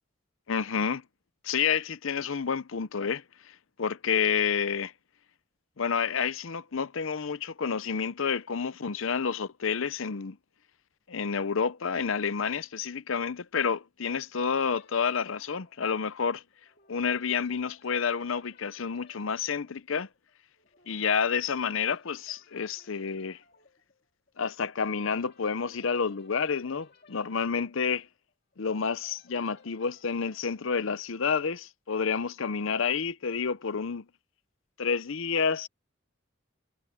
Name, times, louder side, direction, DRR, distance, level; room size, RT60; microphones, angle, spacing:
voice 1, 0.5-1.0 1.4-4.9 5.8-10.4 11.1-16.4 16.9-20.1 20.9-23.4 24.4-28.1 28.6-34.1 34.8-35.7, left 6 dB, 70° left, 0.7 m, -29 dB
sound 1, 14.4-31.6, left 4 dB, 50° left, 2.9 m, -61 dB
head